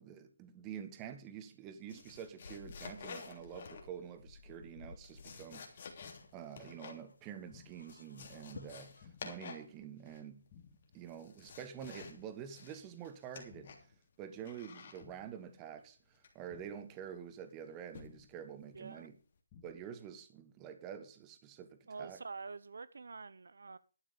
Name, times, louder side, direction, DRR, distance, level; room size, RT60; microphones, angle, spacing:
voice 1, 0.0-5.8 6.3-10.4 10.9-13.9 14.2-19.2 19.6-22.2, right 8 dB, 15° right, 1.5 m, -48 dB
sound 1, 1.9-4.1 4.8-7.1 7.4-7.5 7.7-9.7 10.0-10.5 10.9-12.2 12.5-13.9 14.5-15.0 16.2-16.6 17.9-18.3 18.7-19.0, left 5 dB, 45° left, 3.3 m, -50 dB
sound 2, 2.4-9.1, left 3 dB, 85° left, 1.6 m, -58 dB
sound 3, 6.0-6.5 7.5-8.0 9.0-9.5 10.5-11.0 12.0-12.5 13.5-14.0 15.0-15.5 16.5-17.0 18.0-18.5 19.5-20.0, left 6 dB, 20° left, 2.9 m, -59 dB
voice 2, 18.7-19.1 21.9-23.8, right 4 dB, 75° right, 1.0 m, -46 dB
12.5 x 9.6 x 5.2 m
hypercardioid pair, 160°, 0 cm